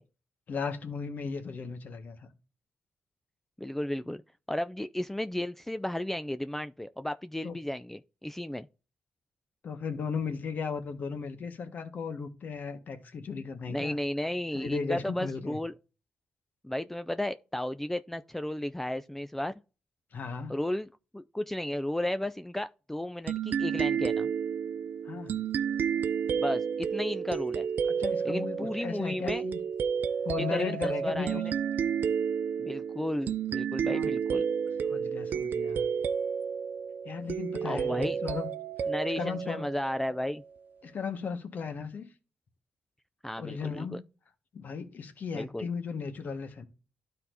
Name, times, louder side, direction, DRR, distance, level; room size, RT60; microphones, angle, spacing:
voice 1, 0.5-2.3 7.4-7.6 9.6-14.0 14.5-15.6 20.1-20.6 25.0-25.4 27.9-29.6 30.2-31.5 31.8-31.9 33.9-34.1 34.9-35.9 37.0-38.5 39.2-39.7 40.8-42.1 43.4-44.0 44.5-46.7, left 5 dB, 60° left, 1.5 m, -36 dB
voice 2, 3.6-4.2 4.5-8.7 13.7-15.7 16.6-19.5 20.5-20.9 21.1-24.3 26.4-27.7 28.2-29.4 30.4-31.4 32.6-34.5 37.6-38.2 38.9-40.4 43.2-44.0 45.3-45.7, left 1 dB, 5° left, 0.4 m, -33 dB
sound 1, 23.3-40.4, right 7 dB, 65° right, 0.4 m, -31 dB
12.5 x 4.2 x 2.7 m
cardioid pair, 80°, 3 cm